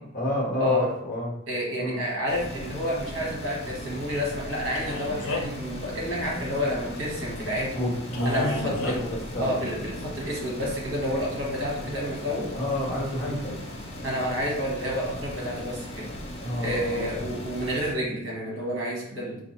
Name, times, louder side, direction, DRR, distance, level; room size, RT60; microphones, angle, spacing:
voice 1, 0.1-1.3 1.8-2.0 7.7-9.6 12.5-13.6 16.4-17.1, left 1 dB, 45° left, -4 dB, 1.2 m, -29 dB
voice 2, 1.5-7.8 8.2-8.9 9.4-12.5 14.0-16.1 16.6-19.4, equal, 60° right, -3 dB, 1.2 m, -29 dB
sound 1, 2.3-17.9, left 1 dB, 30° left, 0.5 m, -38 dB
Male speech man speaking, 4.7-5.6 8.1-9.0, left 2 dB, 80° left, 0.6 m, -32 dB
4.0 x 2.6 x 3.0 m, 0.81 s
head